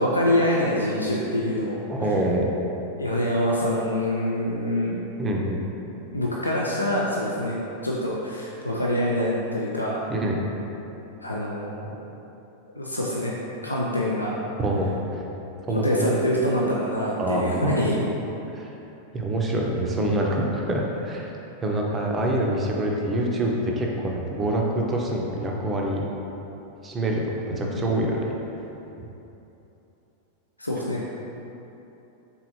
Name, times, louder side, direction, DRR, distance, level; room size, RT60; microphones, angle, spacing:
voice 1, 0.0-1.8 3.0-5.0 6.1-10.0 11.2-12.0 12.8-13.3 13.6-14.3 15.7-18.0 27.8-27.9 30.6-31.0, left 1 dB, 85° left, -4 dB, 0.3 m, -25 dB
voice 2, 1.9-2.4 5.2-5.7 10.1-10.4 14.6-15.2 15.7-16.3 17.1-17.7 18.5-18.7 19.1-21.3 21.6-26.0 26.8-28.3 29.0-29.1, right 1 dB, 20° right, -1 dB, 0.5 m, -26 dB
3.6 x 3.0 x 2.9 m, 3.0 s
figure-of-eight pair, 90°, 0 cm